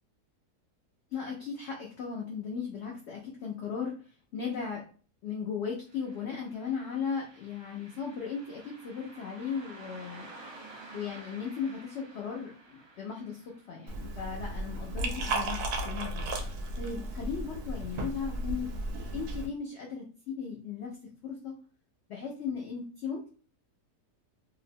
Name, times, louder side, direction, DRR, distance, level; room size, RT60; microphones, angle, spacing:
voice 1, 1.1-3.9 4.3-4.8 5.2-10.3 10.9-13.4 13.7-16.3 16.8-18.7 19.1-21.0 21.2-21.5 22.1-23.3, left 6 dB, 70° left, -1 dB, 0.6 m, -36 dB
Car passing by, 5.9-16.7 17.0-17.1 18.0-18.2 18.7-18.8 19.3-19.4, right 2 dB, 50° right, 1.2 m, -52 dB
Liquid, 13.9-19.5, right 2 dB, 75° right, 1.0 m, -34 dB
2.7 x 2.0 x 2.5 m, 0.40 s
omnidirectional pair, 1.7 m